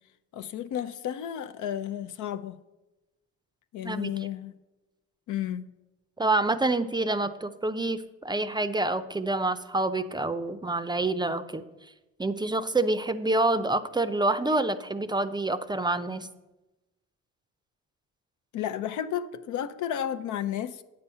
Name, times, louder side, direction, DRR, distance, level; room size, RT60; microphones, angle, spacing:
voice 1, 0.3-2.6 3.7-4.5 5.3-5.7 18.5-20.8, left 10 dB, 75° left, 0.6 m, -32 dB
voice 2, 6.2-11.6 12.2-16.3, right 2 dB, 15° right, 0.5 m, -27 dB
8.9 x 6.9 x 5.6 m
cardioid pair, 90°, 30 cm